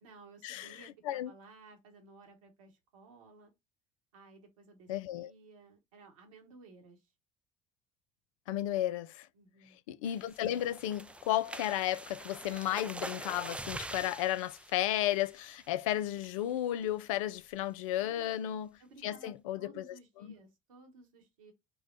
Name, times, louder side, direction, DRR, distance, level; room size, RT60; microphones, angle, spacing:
voice 1, 0.0-3.5 4.1-7.1 9.3-9.8 17.9-18.4 18.8-21.5, right 3 dB, 85° right, 1.3 m, -57 dB
voice 2, 4.9-5.3 8.5-9.3 9.9-18.7 19.0-20.3, left 13 dB, 80° left, 0.4 m, -33 dB
sound 1, 10.0-15.8 16.2-16.5 16.8-16.9 17.3-17.6, right 2 dB, 5° right, 0.4 m, -45 dB
4.9 x 2.2 x 3.8 m
hypercardioid pair, 65°, 17 cm